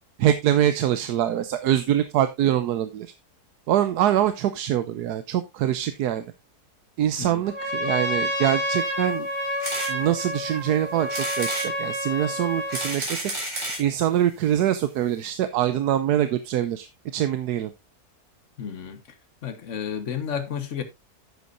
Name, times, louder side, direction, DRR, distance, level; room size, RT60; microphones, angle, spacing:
voice 1, 0.2-3.1 3.7-6.3 7.0-9.3 9.9-13.3 13.8-16.9 17.1-17.7, right 11 dB, 80° right, 1.2 m, -24 dB
Trumpet, 7.4-12.9, equal, 5° right, 4.8 m, -29 dB
sound 1, 9.6-9.9 10.4-10.5 11.1-11.7 12.4-13.9 14.7-14.8 15.0-15.1 15.3-15.4, right 1 dB, 45° right, 4.6 m, -31 dB
voice 2, 18.6-19.0 19.4-20.8, left 8 dB, 50° left, 1.5 m, -31 dB
11.0 x 8.2 x 2.5 m
omnidirectional pair, 1.7 m